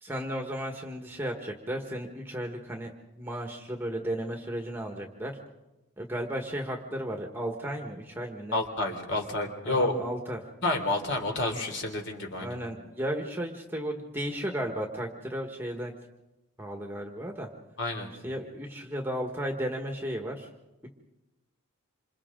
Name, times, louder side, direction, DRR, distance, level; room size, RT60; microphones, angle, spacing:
voice 1, 0.0-2.9 3.2-5.4 6.0-8.6 9.6-10.5 12.4-15.9 16.6-17.5 18.2-20.5 20.8-20.9, right 1 dB, 10° right, 2 dB, 1.5 m, -34 dB
voice 2, 8.5-9.9 10.6-12.5 17.8-18.1, left 2 dB, 55° left, 3 dB, 3.3 m, -29 dB
27.5 x 27.0 x 3.8 m, 0.98 s
head